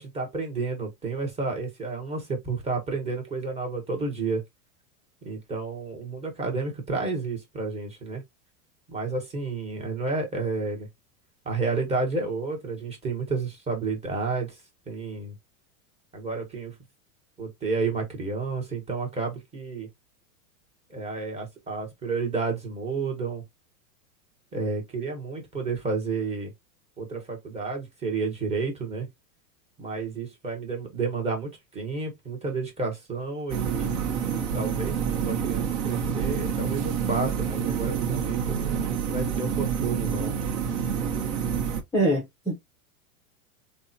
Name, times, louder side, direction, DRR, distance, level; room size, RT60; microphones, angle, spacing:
voice 1, 0.0-4.4 5.2-8.2 8.9-10.9 11.4-14.6 14.9-15.4 16.1-16.7 17.4-19.9 20.9-23.4 24.5-26.5 27.0-29.1 29.8-33.9 34.5-40.3, right 4 dB, 15° right, 1.1 m, -31 dB
sound 1, 33.5-41.8, right 7 dB, 50° right, 0.9 m, -28 dB
voice 2, 41.9-42.6, right 1 dB, 5° left, 0.5 m, -24 dB
3.5 x 2.2 x 2.6 m
supercardioid pair, 140°, 44 cm